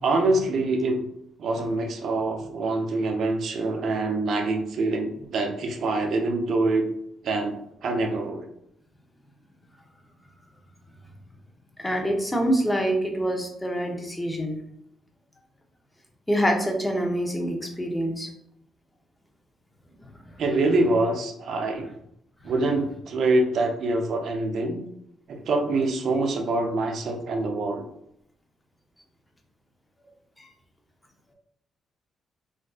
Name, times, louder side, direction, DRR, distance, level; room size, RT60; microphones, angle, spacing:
voice 1, 0.0-1.0 1.4-6.9 7.2-7.6 7.8-8.5 20.4-21.9 22.4-24.8 25.3-27.8, right 2 dB, 65° right, 4 dB, 0.5 m, -25 dB
voice 2, 11.8-14.6 16.3-18.3 20.0-20.1 22.4-22.5 30.4-30.5, equal, 10° left, 1 dB, 0.7 m, -26 dB
3.6 x 2.6 x 2.3 m, 0.75 s
cardioid pair, 90°, 0 cm